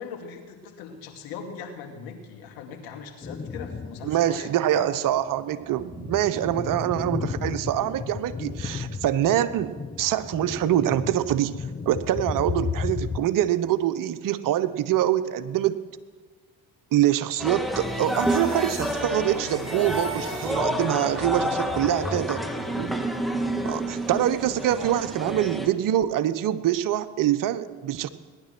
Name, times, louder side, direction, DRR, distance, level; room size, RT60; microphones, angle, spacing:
voice 1, 0.0-5.0 12.6-12.7 21.3-22.9 24.8-24.9, left 6 dB, 70° left, 3 dB, 2.4 m, -39 dB
sound 1, 3.2-4.1 4.5-4.6 5.3-13.2, left 5 dB, 20° left, 1.0 m, -33 dB
voice 2, 4.0-15.8 16.9-21.5 21.8-22.4 22.8-23.0 23.6-28.1, right 12 dB, 55° right, 13 dB, 1.0 m, -25 dB
sound 2, 17.4-25.7, right 1 dB, ahead, 1.9 m, -29 dB
sound 3, 17.6-21.0, right 2 dB, 25° right, 5.3 m, -42 dB
18.5 x 11.0 x 6.1 m, 1.4 s
hypercardioid pair, 60°, 38 cm